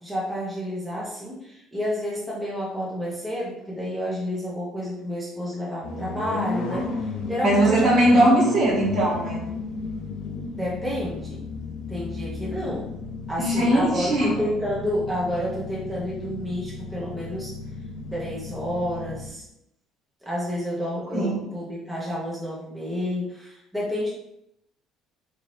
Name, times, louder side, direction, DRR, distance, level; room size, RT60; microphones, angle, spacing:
voice 1, 0.0-7.9 10.5-11.4 11.9-12.9 13.3-17.5 18.0-19.4 20.2-24.1, equal, 10° right, -7 dB, 1.0 m, -30 dB
sound 1, 5.8-19.3, left 3 dB, 75° left, 0.6 m, -33 dB
voice 2, 7.4-9.5 13.4-14.4 21.1-21.4, right 1 dB, 50° right, -4 dB, 1.4 m, -20 dB
3.9 x 2.7 x 3.2 m, 0.81 s
cardioid pair, 125°, 0 cm